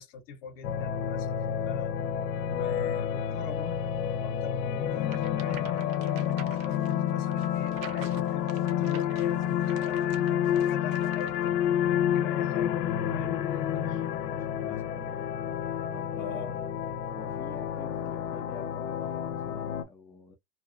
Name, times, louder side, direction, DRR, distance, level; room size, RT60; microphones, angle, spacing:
voice 1, 0.0-1.9 2.5-3.8 4.2-12.9 13.1-13.4 13.9-14.0 14.6-15.0 16.2-16.6, left 5 dB, 50° left, 0.9 m, -42 dB
sound 1, 0.6-19.8, left 10 dB, 85° left, 0.7 m, -29 dB
sound 2, 5.0-11.5, right 8 dB, 45° right, 0.7 m, -48 dB
voice 2, 14.1-15.3 15.9-16.6 17.1-20.4, left 3 dB, 5° left, 0.5 m, -47 dB
2.9 x 2.3 x 2.5 m
supercardioid pair, 130°, 47 cm